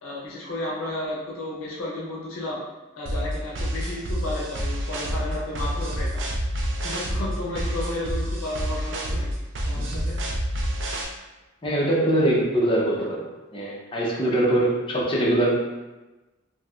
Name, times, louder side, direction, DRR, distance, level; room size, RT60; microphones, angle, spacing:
voice 1, 0.0-2.6 3.0-6.2 6.8-9.3 9.7-10.1, left 1 dB, 75° left, -4 dB, 0.6 m, -32 dB
sound 1, 3.1-11.1, equal, 55° right, 0.4 m, -28 dB
voice 2, 11.6-13.3 13.5-15.6, right 1 dB, 25° left, -4 dB, 0.5 m, -22 dB
3.0 x 2.6 x 2.4 m, 1.1 s
head